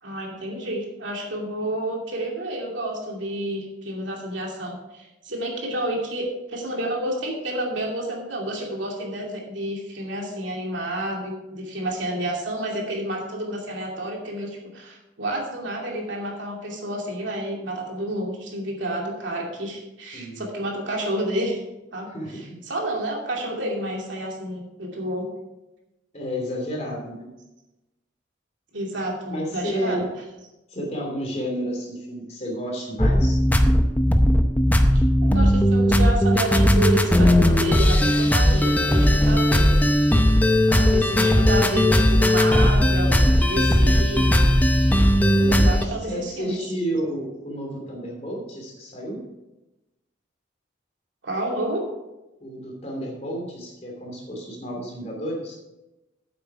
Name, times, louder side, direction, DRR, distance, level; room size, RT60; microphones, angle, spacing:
voice 1, 0.0-21.6 21.9-22.4 22.7-25.3 28.7-30.1 34.9-39.7 40.7-44.3 45.2-46.6 51.2-51.8, right 1 dB, 75° right, -1 dB, 2.6 m, -30 dB
voice 2, 20.1-20.4 22.1-22.6 26.1-27.3 29.3-29.9 30.7-33.4 41.0-41.4 45.3-49.3 52.4-55.6, equal, 35° left, 0 dB, 2.8 m, -31 dB
sound 1, 33.0-45.8, equal, 10° left, 0.6 m, -18 dB
9.1 x 8.1 x 4.8 m, 0.99 s
head